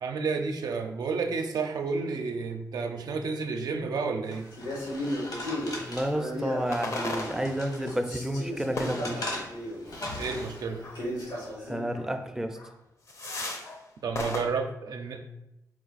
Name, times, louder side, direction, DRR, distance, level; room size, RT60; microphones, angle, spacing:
voice 1, 0.0-4.5 10.1-10.8 14.0-15.3, right 4 dB, 75° right, 5 dB, 0.5 m, -31 dB
sound 1, 4.3-8.0 8.4-10.5, left 1 dB, 70° left, 1.3 m, -39 dB
Male speech man speaking, 4.5-7.5 7.8-11.9, equal, 90° left, 1.5 m, -36 dB
voice 2, 5.8-9.4 11.7-12.6, equal, 5° right, 5 dB, 0.5 m, -31 dB
sound 2, 6.1-6.3 6.7-7.9 8.8-9.6 10.8-11.0 11.3-11.5 11.9-12.1 12.5-12.7 13.1-13.8 14.1-14.4, left 2 dB, 50° left, 0.7 m, -36 dB
4.5 x 2.3 x 4.0 m, 0.88 s
cardioid pair, 80°, 7 cm